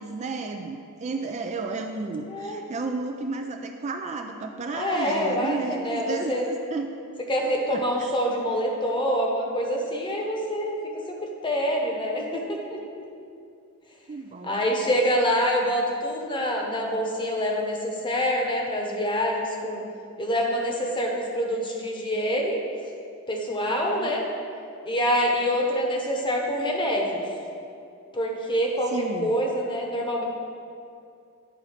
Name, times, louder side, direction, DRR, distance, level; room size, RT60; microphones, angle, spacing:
voice 1, 0.0-6.9 7.7-8.2 14.1-14.8 23.7-24.1 28.9-29.3, right 3 dB, 30° right, 4 dB, 0.4 m, -32 dB
voice 2, 2.3-2.6 4.7-6.4 7.3-10.8 11.2-12.8 14.4-19.8 20.2-22.6 23.3-24.2 24.8-27.2 28.1-28.9 29.2-30.2, equal, 20° left, 0 dB, 1.0 m, -26 dB
9.6 x 4.0 x 5.7 m, 2.5 s
head